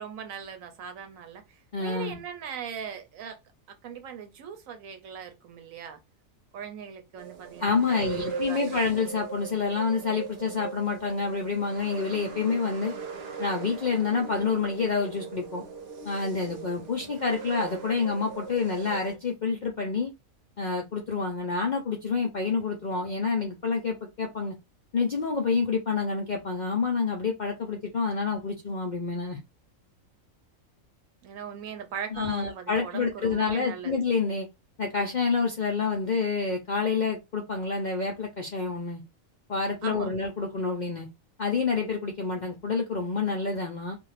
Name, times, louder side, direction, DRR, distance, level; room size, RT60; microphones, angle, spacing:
voice 1, 0.0-3.4 3.7-6.0 6.5-8.8 31.2-33.9 39.8-40.1, right 7 dB, 75° right, 1.1 m, -39 dB
voice 2, 1.7-2.2 7.6-12.9 13.4-15.6 16.0-20.1 20.6-24.6 24.9-29.4 32.1-34.5 34.8-39.0 39.5-41.1 41.4-44.0, left 4 dB, 60° left, 0.4 m, -28 dB
sound 1, 7.2-19.1, right 5 dB, 55° right, 0.9 m, -39 dB
2.5 x 2.4 x 3.2 m
omnidirectional pair, 1.4 m